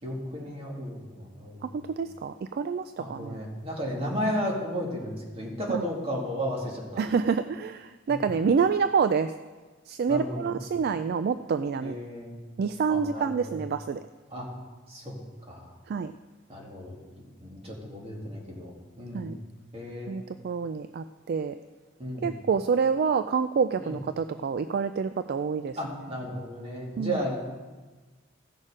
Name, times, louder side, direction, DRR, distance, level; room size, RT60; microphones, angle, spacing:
voice 1, 0.0-2.0 3.0-7.0 8.1-8.2 10.1-10.6 11.8-12.3 12.9-13.6 14.3-14.5 14.9-15.2 15.5-15.7 16.5-19.3 19.7-20.1 22.0-22.3 23.8-23.9 25.8-27.4, equal, 30° right, -2 dB, 2.4 m, -34 dB
voice 2, 1.6-3.4 5.7-5.8 7.0-9.3 9.9-12.0 12.6-14.0 15.9-16.1 19.1-19.4 20.1-21.6 22.2-25.8 27.0-27.2, right 6 dB, 50° right, 11 dB, 0.3 m, -27 dB
15.5 x 6.5 x 5.0 m, 1.3 s
head